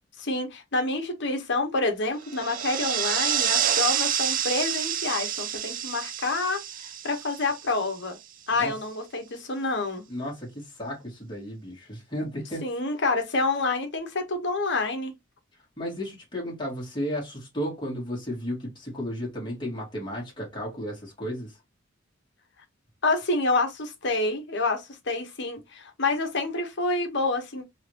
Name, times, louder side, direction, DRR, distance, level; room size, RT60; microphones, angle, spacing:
voice 1, 0.2-8.2 8.5-10.0 12.6-15.1 23.0-27.6, left 3 dB, 60° left, 1.2 m, -28 dB
sound 1, 2.2-8.1, right 9 dB, 45° right, 0.5 m, -28 dB
voice 2, 10.1-12.7 15.8-21.6, equal, 25° left, 2.1 m, -34 dB
4.0 x 3.1 x 2.9 m
head